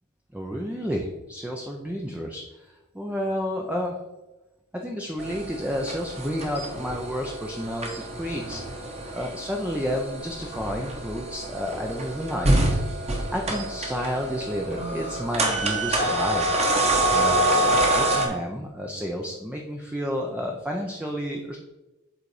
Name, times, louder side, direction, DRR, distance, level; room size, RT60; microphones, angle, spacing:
voice 1, 0.3-4.0 4.7-12.5 13.3-16.5 17.1-21.6, equal, 5° right, 1 dB, 0.6 m, -31 dB
sound 1, 5.2-18.3, right 1 dB, 30° right, 1.3 m, -26 dB
7.7 x 4.0 x 4.8 m, 1.1 s
head